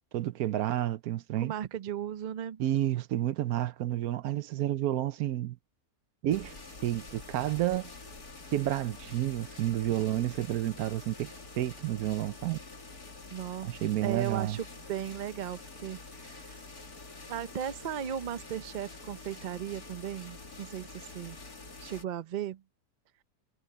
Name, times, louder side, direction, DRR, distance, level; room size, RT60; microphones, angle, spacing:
voice 1, 0.1-1.5 2.6-5.6 6.2-6.6 6.8-7.9 8.5-12.6 13.6-14.6, right 13 dB, 75° right, 1.1 m, -30 dB
voice 2, 1.4-2.6 13.3-13.8 14.0-16.6 17.3-21.4 21.8-22.6, right 9 dB, 50° right, 0.6 m, -36 dB
sound 1, 6.3-22.0, left 3 dB, 80° left, 3.4 m, -47 dB
omnidirectional pair, 1.6 m